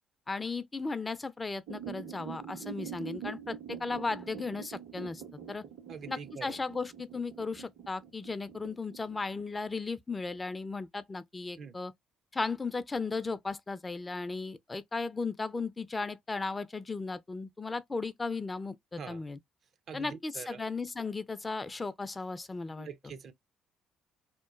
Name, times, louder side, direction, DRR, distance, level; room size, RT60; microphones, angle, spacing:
voice 1, 0.3-5.2 5.5-5.6 6.1-11.9 12.3-19.4 19.9-22.9, left 3 dB, 25° left, 0.4 m, -36 dB
sound 1, 1.7-9.4, right 8 dB, 75° right, 1.4 m, -45 dB
voice 2, 5.9-6.6 11.6-11.7 19.0-19.2 19.9-20.6 22.7-23.3, right 6 dB, 50° right, 0.4 m, -44 dB
2.9 x 2.0 x 2.4 m
hypercardioid pair, 50°, 0 cm